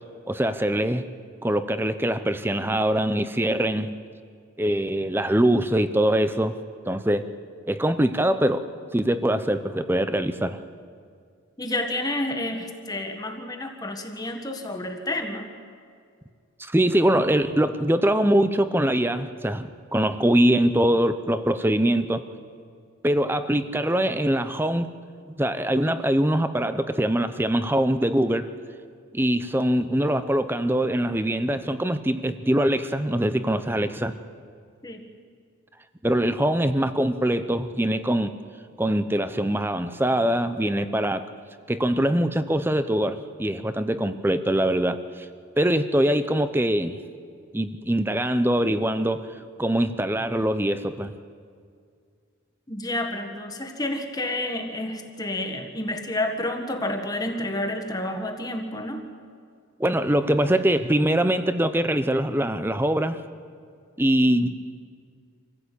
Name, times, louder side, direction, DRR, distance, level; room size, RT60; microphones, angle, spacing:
voice 1, 0.3-1.1 1.4-3.9 4.6-6.6 6.9-7.3 7.7-8.6 8.9-10.6 16.6-22.2 23.0-24.9 25.4-28.5 29.1-34.1 36.0-38.3 38.8-41.3 41.7-45.3 45.6-47.0 47.5-49.3 49.6-51.1 59.8-63.2 64.0-64.5, right 1 dB, 10° right, 11 dB, 0.7 m, -23 dB
voice 2, 11.6-15.5 34.8-35.1 52.7-59.0, left 1 dB, 20° left, 4 dB, 1.7 m, -30 dB
26.0 x 15.5 x 8.4 m, 2.2 s
head